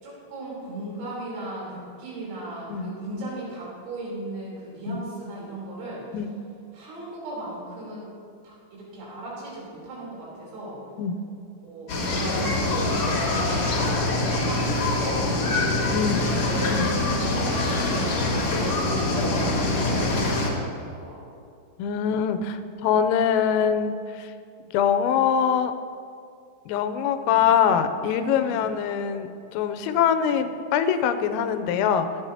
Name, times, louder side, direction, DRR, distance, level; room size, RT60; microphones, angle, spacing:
voice 1, 0.0-6.0 6.7-8.1 8.4-10.8 11.6-13.1 13.4-15.5 15.9-21.2 27.3-27.4 28.4-28.7 30.2-30.4, right 2 dB, 80° right, -6 dB, 6.2 m, -37 dB
sound 1, 11.9-20.5, left 2 dB, 60° left, 1.6 m, -24 dB
voice 2, 21.8-24.3 24.7-25.7 26.7-32.1, left 8 dB, 90° left, 9 dB, 3.3 m, -23 dB
24.5 x 8.8 x 2.8 m, 2.4 s
omnidirectional pair, 5.9 m